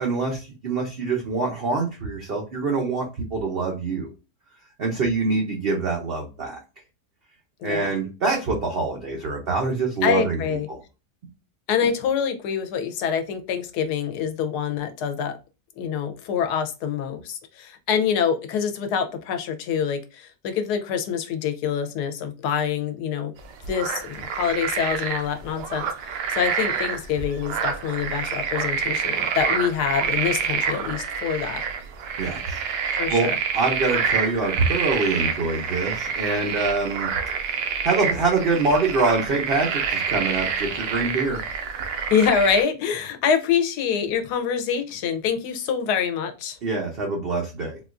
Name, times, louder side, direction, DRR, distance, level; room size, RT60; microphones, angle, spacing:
voice 1, 0.0-4.1 4.8-6.6 7.6-10.4 10.7-10.8 32.2-37.1 37.8-41.4 46.6-47.8, right 3 dB, 65° right, 0.5 m, -25 dB
voice 2, 7.6-8.0 10.0-10.7 11.7-15.4 15.8-23.3 23.7-31.6 33.0-33.4 42.1-46.6, left 7 dB, 75° left, 1.1 m, -25 dB
sound 1, 23.4-42.6, right 6 dB, 90° right, 1.2 m, -27 dB
3.9 x 2.3 x 2.4 m
omnidirectional pair, 1.8 m